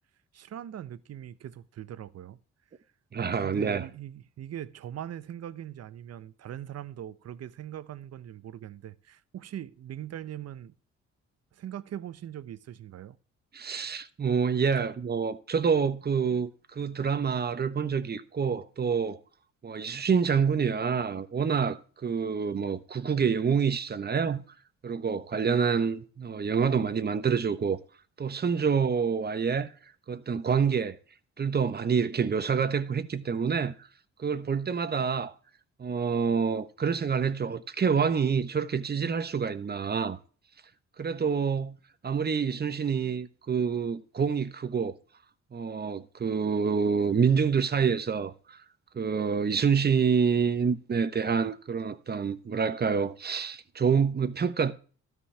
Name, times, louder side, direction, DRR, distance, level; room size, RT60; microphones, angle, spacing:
voice 1, 0.3-2.4 3.4-10.7 11.5-13.2 14.7-14.8, right 11 dB, 55° right, 0.8 m, -41 dB
voice 2, 3.1-3.9 13.5-19.2 19.6-24.4 24.8-27.8 28.2-29.7 30.1-31.0 31.4-33.7 34.2-35.3 35.8-40.2 41.0-41.8 42.0-44.9 45.5-48.6 48.9-54.7, right 6 dB, 35° right, 1.1 m, -27 dB
13.0 x 5.4 x 6.7 m
cardioid pair, 90°, 30 cm